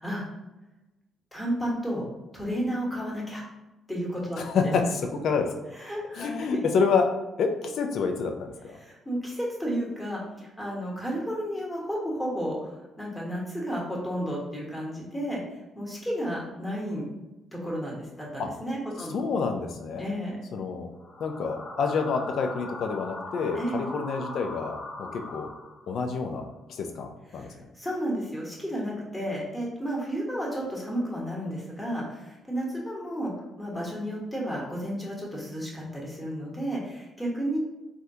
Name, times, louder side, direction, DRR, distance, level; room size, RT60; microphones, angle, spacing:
voice 1, 0.0-0.3 1.3-2.0 2.3-3.4 3.9-4.4 5.8-6.4 8.8-12.7 13.0-15.4 15.7-17.1 17.5-19.2 20.0-20.4 23.5-23.8 27.4-27.5 27.8-33.3 33.6-37.6, equal, 10° left, -4 dB, 1.1 m, -32 dB
voice 2, 4.4-5.5 6.1-7.1 7.4-8.8 18.4-18.5 19.0-20.1 20.5-20.9 21.2-25.5 25.9-27.7, left 5 dB, 70° left, 5 dB, 0.4 m, -28 dB
sound 1, 21.0-26.0, left 2 dB, 50° left, 0.9 m, -40 dB
3.5 x 2.2 x 2.7 m, 1.0 s
cardioid pair, 90°, 0 cm